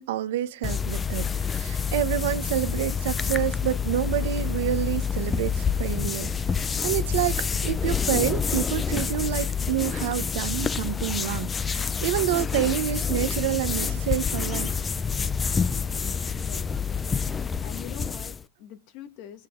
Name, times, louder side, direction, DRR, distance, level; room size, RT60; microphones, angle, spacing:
voice 1, 0.0-6.3 6.8-14.8, right 12 dB, 75° right, 1.0 m, -28 dB
sound 1, 0.6-18.4, left 6 dB, 20° left, 0.5 m, -27 dB
voice 2, 15.9-19.5, left 11 dB, 60° left, 1.8 m, -45 dB
21.0 x 7.3 x 3.8 m
hypercardioid pair, 110°, 0 cm